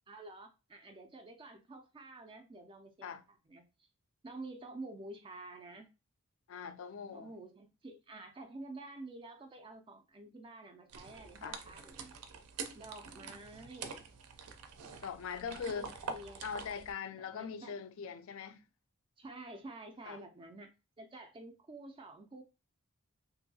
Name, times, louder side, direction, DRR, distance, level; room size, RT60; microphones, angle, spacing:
voice 1, 0.0-3.9 4.2-5.9 7.1-12.2 12.7-14.0 15.7-16.5 17.2-17.8 19.2-20.7 21.0-22.4, right 2 dB, 20° right, 0.3 m, -49 dB
voice 2, 6.5-7.3 11.4-11.6 15.0-15.9 16.4-18.6 20.1-20.2, left 6 dB, 60° left, 0.3 m, -41 dB
sound 1, 10.9-16.9, right 5 dB, 80° right, 0.5 m, -46 dB
2.9 x 2.6 x 2.7 m
head